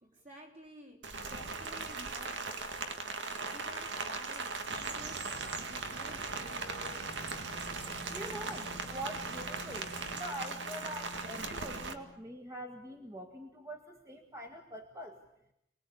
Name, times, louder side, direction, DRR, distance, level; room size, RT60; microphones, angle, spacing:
voice 1, 0.0-6.9, equal, 40° right, 1 dB, 3.8 m, -53 dB
Rain, 1.0-11.9, right 4 dB, 80° right, 2.1 m, -39 dB
sound 1, 4.7-10.2, right 3 dB, 65° right, 1.7 m, -46 dB
sound 2, 6.2-12.3, left 2 dB, 50° left, 1.4 m, -51 dB
voice 2, 8.1-15.2, equal, 15° right, 2 dB, 1.7 m, -44 dB
29.0 x 20.5 x 8.5 m, 0.80 s
head